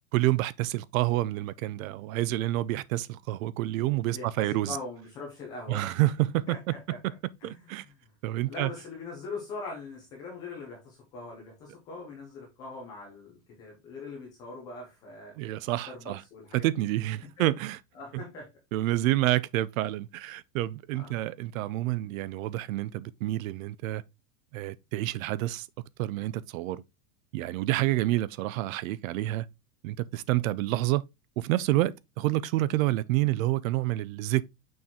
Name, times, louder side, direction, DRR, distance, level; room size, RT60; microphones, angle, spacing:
voice 1, 0.1-4.8 5.7-6.7 7.4-7.9 8.2-8.7 15.4-16.2 16.5-17.8 18.1-18.2 18.7-24.0 24.5-25.7 26.0-26.8 27.3-29.5 29.8-31.1 31.4-34.4, right 16 dB, 60° right, 0.5 m, -28 dB
voice 2, 4.0-5.9 6.5-7.0 7.4-7.7 8.5-15.3 15.9-16.8 17.4-17.5 17.9-18.5 20.9-21.2, left 3 dB, 10° left, 0.3 m, -42 dB
6.3 x 4.4 x 3.5 m
supercardioid pair, 175°, 46 cm